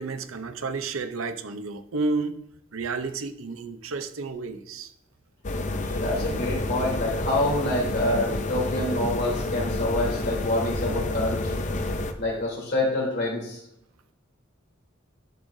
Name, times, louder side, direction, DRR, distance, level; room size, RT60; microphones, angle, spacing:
voice 1, 0.0-2.4 2.7-4.9, right 3 dB, 80° right, 8 dB, 0.6 m, -31 dB
sound 1, 5.4-12.1, left 2 dB, 35° left, 0.6 m, -29 dB
voice 2, 5.9-11.5 12.2-13.6, left 1 dB, 55° left, -3 dB, 3.1 m, -27 dB
11.0 x 6.3 x 2.6 m, 0.77 s
head